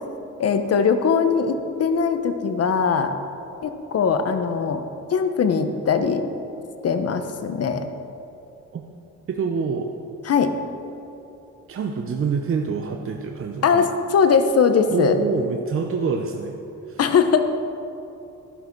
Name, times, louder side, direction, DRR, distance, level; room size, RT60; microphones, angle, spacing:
voice 1, 0.4-3.1 3.6-4.8 5.1-6.2 6.8-7.9 10.3-10.5 13.6-15.2 17.0-17.4, left 6 dB, 55° left, 8 dB, 1.0 m, -20 dB
voice 2, 9.3-9.9 11.7-13.9 14.9-16.6 16.9-17.0, right 5 dB, 45° right, 2 dB, 0.8 m, -26 dB
11.5 x 11.0 x 4.6 m, 2.9 s
cardioid pair, 90°, 30 cm